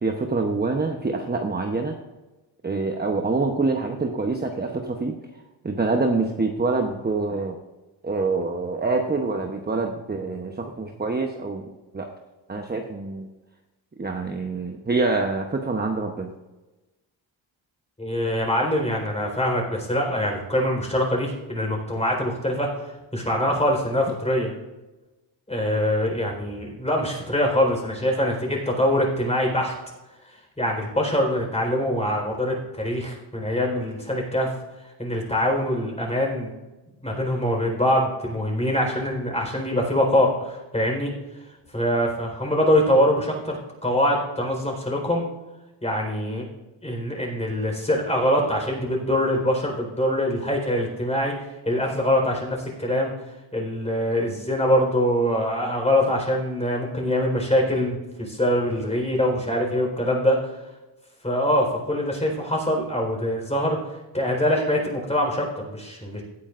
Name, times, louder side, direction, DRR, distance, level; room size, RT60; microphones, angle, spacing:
voice 1, 0.0-2.0 2.6-5.2 5.6-7.6 8.0-11.6 11.9-12.1 12.5-13.3 14.0-16.3, right 3 dB, 20° right, 3 dB, 1.0 m, -25 dB
voice 2, 18.0-24.5 25.5-29.7 30.6-34.5 35.0-36.5 37.0-41.1 41.7-45.2 45.8-46.5 46.8-51.3 51.7-53.1 53.5-60.4 61.2-63.8 64.1-66.2, left 1 dB, 15° left, 0 dB, 4.4 m, -24 dB
16.5 x 9.8 x 2.6 m, 1.1 s
cardioid pair, 80°, 46 cm